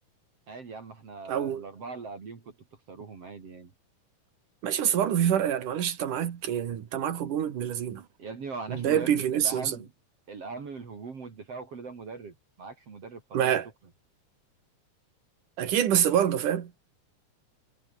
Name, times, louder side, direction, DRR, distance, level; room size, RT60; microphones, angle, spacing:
voice 1, 0.5-3.7 8.2-9.9 10.3-13.5, right 4 dB, 50° right, 4.2 m, -41 dB
voice 2, 1.3-1.6 4.6-8.1 8.7-9.8 13.3-13.7 15.6-16.7, right 9 dB, 80° right, 3.6 m, -26 dB
omnidirectional pair, 3.6 m